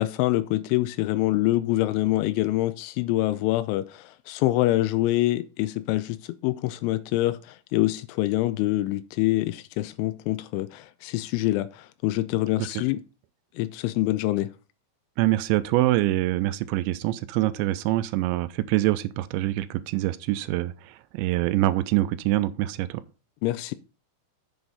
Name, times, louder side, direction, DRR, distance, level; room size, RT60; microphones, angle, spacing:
voice 1, 0.0-13.0 13.6-14.5 23.4-23.7, left 17 dB, 85° left, 3.0 m, -25 dB
voice 2, 15.2-23.0, right 16 dB, 85° right, 2.7 m, -25 dB
7.9 x 7.6 x 4.1 m
omnidirectional pair, 5.4 m